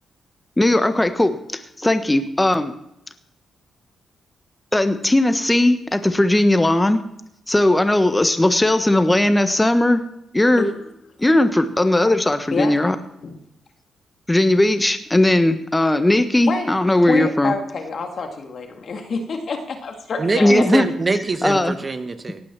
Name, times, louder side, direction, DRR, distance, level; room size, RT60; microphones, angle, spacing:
voice 1, 0.6-1.4 1.8-2.7 4.7-7.0 7.5-10.0 10.3-10.6 11.2-12.9 14.3-17.5 20.4-20.9 21.4-21.8, left 1 dB, 15° left, 9 dB, 1.2 m, -17 dB
voice 2, 10.6-10.9 12.5-12.9 13.2-13.4 16.4-16.7 17.1-20.7, left 4 dB, 60° left, 5 dB, 1.9 m, -27 dB
voice 3, 20.2-22.4, right 3 dB, 40° right, 9 dB, 1.2 m, -23 dB
18.0 x 6.1 x 6.0 m, 0.79 s
supercardioid pair, 60°, 0 cm